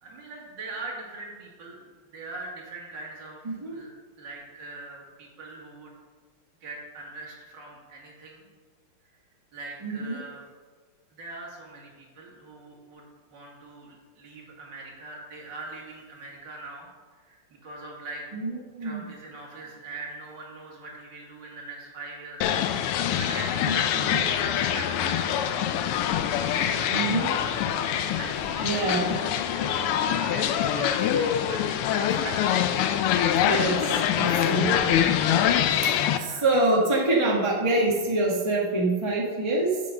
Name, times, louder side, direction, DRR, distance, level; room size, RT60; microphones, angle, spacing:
voice 1, 0.0-5.9 6.6-8.5 9.5-10.4 11.1-16.9 17.2-18.2 18.8-25.8 26.5-27.6 28.1-28.7 29.5-32.6 34.8-35.4 36.2-36.5, right 3 dB, 55° right, -3 dB, 2.4 m, -42 dB
voice 2, 9.8-10.2 18.3-19.0 23.7-24.2 26.9-27.3 28.6-29.1 33.4-35.0 36.2-39.7, right 2 dB, 20° right, -3 dB, 1.0 m, -26 dB
sound 1, 22.4-36.2, left 9 dB, 90° left, 1.5 m, -25 dB
7.5 x 6.0 x 6.4 m, 1.5 s
omnidirectional pair, 2.4 m